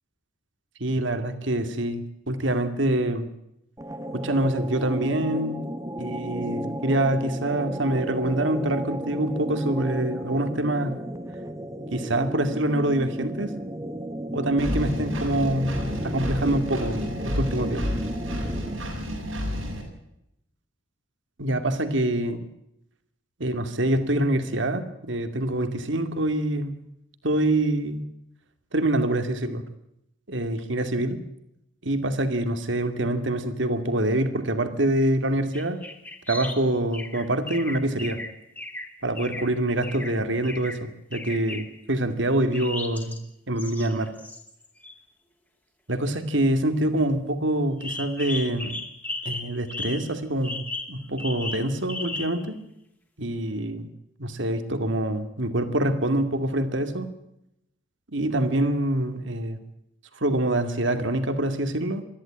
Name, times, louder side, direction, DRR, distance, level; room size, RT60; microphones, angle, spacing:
voice 1, 0.8-3.3 4.1-5.6 6.0-11.0 11.9-13.6 14.3-17.9 21.4-22.5 23.4-26.8 27.2-28.1 28.7-29.6 30.3-31.2 31.8-35.8 36.3-38.2 39.0-43.2 43.5-44.1 45.9-48.8 49.2-52.6 53.2-53.9 54.2-57.1 58.1-59.6 60.1-62.0, right 1 dB, 65° right, 9 dB, 2.4 m, -25 dB
sound 1, 3.8-18.9, equal, 15° right, 1.3 m, -34 dB
Engine, 14.6-19.8, equal, 85° right, 7.8 m, -30 dB
sound 2, 35.5-36.6 36.9-39.5 39.8-40.1 40.4-40.8 41.1-41.7 42.5-43.2 43.6-45.0 47.8-50.2 50.4-52.5, left 2 dB, 10° left, 2.7 m, -36 dB
23.0 x 14.5 x 8.7 m, 0.83 s
head